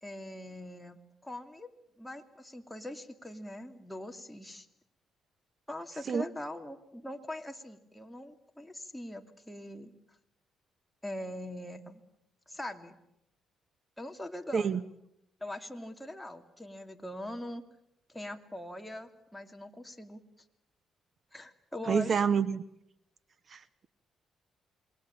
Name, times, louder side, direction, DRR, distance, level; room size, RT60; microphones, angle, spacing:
voice 1, 0.0-1.7 2.0-4.7 5.7-9.9 11.0-12.0 12.5-13.0 14.0-14.9 15.4-17.6 18.1-20.2 21.3-22.3, left 1 dB, 5° left, 4 dB, 2.7 m, -42 dB
voice 2, 21.9-22.6 23.5-23.6, right 6 dB, 45° right, 16 dB, 1.0 m, -27 dB
27.5 x 22.5 x 8.7 m, 0.79 s
cardioid pair, 90°, 0 cm